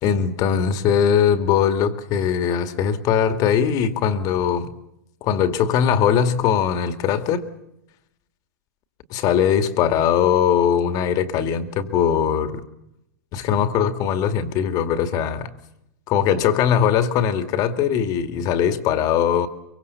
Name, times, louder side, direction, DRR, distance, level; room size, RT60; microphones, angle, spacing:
voice 1, 0.0-4.7 5.2-7.5 9.1-12.6 13.3-15.5 16.1-19.5, left 8 dB, 40° left, 9 dB, 2.3 m, -20 dB
24.5 x 23.0 x 7.0 m, 0.83 s
hypercardioid pair, 120°, 9 cm